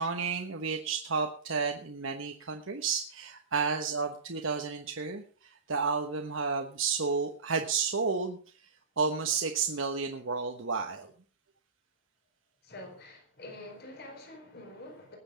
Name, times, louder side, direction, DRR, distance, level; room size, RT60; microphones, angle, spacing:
voice 1, 0.0-11.1, right 5 dB, 70° right, 4 dB, 1.1 m, -32 dB
voice 2, 12.6-15.2, left 1 dB, 50° left, 2 dB, 4.5 m, -46 dB
19.5 x 8.1 x 5.1 m, 0.42 s
head